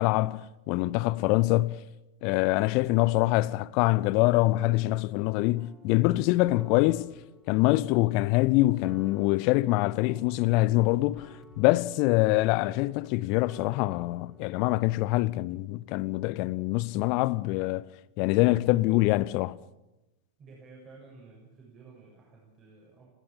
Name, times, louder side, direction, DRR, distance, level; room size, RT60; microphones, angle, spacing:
voice 1, 0.0-1.8 2.2-7.1 7.5-11.3 11.6-17.9 18.2-19.6, left 19 dB, 45° left, 0.7 m, -24 dB
sound 1, 5.6-14.6, left 1 dB, 15° right, 5.5 m, -55 dB
voice 2, 20.4-23.1, right 4 dB, 30° right, 7.0 m, -52 dB
20.5 x 17.0 x 8.8 m
figure-of-eight pair, 90°, 0 cm